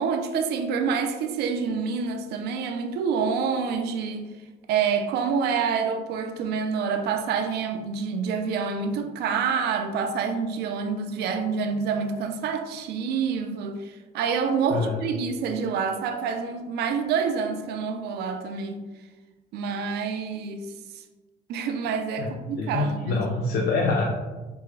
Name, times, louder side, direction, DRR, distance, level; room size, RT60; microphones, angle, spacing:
voice 1, 0.0-4.3 4.7-18.8 19.5-21.0 21.5-23.2, right 6 dB, 75° right, 0.5 m, -27 dB
voice 2, 14.7-15.0 22.2-24.1, left 3 dB, 70° left, 0.5 m, -26 dB
4.6 x 3.5 x 3.2 m
cardioid pair, 110°, 17 cm